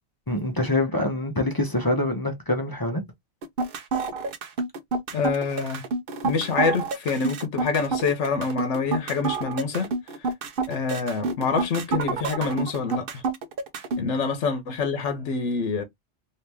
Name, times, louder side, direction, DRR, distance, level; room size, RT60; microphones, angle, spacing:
voice 1, 0.3-3.0, left 1 dB, 25° left, 0.5 m, -25 dB
sound 1, 3.4-14.0, right 4 dB, 55° right, 0.8 m, -28 dB
voice 2, 5.1-5.8 6.2-10.3 10.7-13.2 14.0-15.8, left 4 dB, 80° left, 1.1 m, -26 dB
2.9 x 2.8 x 3.3 m
omnidirectional pair, 1.2 m